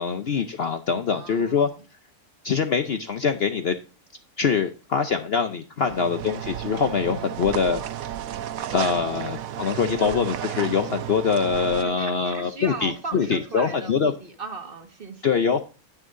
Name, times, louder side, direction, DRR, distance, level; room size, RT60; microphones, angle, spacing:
voice 1, 0.0-1.7 2.4-3.7 4.4-7.8 8.7-14.1 15.2-15.6, left 6 dB, 55° left, 8 dB, 0.8 m, -24 dB
voice 2, 1.1-1.8 5.8-6.1 9.0-9.4 10.0-10.2 11.8-15.5, right 3 dB, 40° right, 5 dB, 1.6 m, -38 dB
sound 1, 5.8-11.8, right 11 dB, 75° right, 1.1 m, -32 dB
9.9 x 9.4 x 2.5 m, 0.34 s
omnidirectional pair, 1.5 m